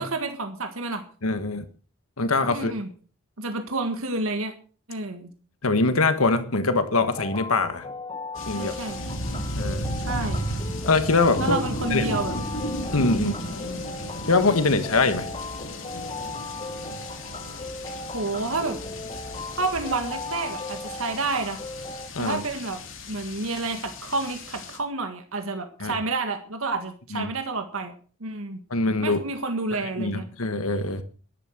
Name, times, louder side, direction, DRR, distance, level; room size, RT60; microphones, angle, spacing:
voice 1, 0.0-1.0 2.5-2.9 3.4-4.5 4.9-5.3 8.5-9.0 10.0-10.4 11.4-12.3 13.1-13.3 18.1-18.8 19.6-21.6 22.2-22.8 23.1-27.9 28.2-28.6 29.0-30.2, right 3 dB, 75° right, 6 dB, 1.8 m, -29 dB
voice 2, 1.2-1.7 2.2-2.7 5.6-7.9 8.4-8.7 9.6-9.9 10.8-11.6 11.9-12.0 12.9-13.3 14.3-15.3 22.1-22.4 25.8-26.0 27.1-27.3 28.7-29.2 30.0-31.0, left 3 dB, 80° left, 9 dB, 1.5 m, -23 dB
sound 1, 7.1-22.1, left 3 dB, 25° left, 1.2 m, -37 dB
sound 2, 8.3-24.8, equal, 60° left, 3.2 m, -34 dB
13.5 x 11.5 x 6.6 m, 0.41 s
head